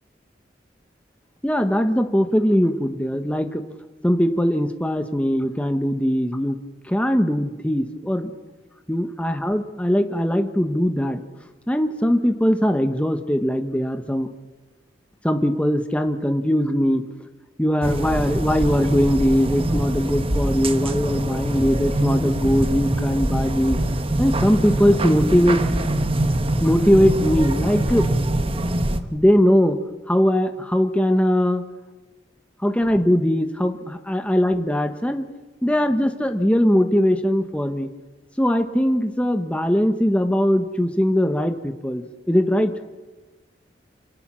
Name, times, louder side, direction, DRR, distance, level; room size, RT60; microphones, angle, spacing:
voice 1, 1.4-3.6 4.0-6.6 6.8-8.3 8.9-11.2 11.7-14.3 15.2-17.0 17.6-23.8 24.2-25.6 26.6-28.1 29.1-29.8 30.1-31.6 32.6-35.3 35.6-37.9 38.4-42.7, equal, 5° left, 6 dB, 1.0 m, -20 dB
sound 1, 17.8-29.0, right 1 dB, 30° right, 1.2 m, -23 dB
27.0 x 18.0 x 6.2 m, 1.2 s
head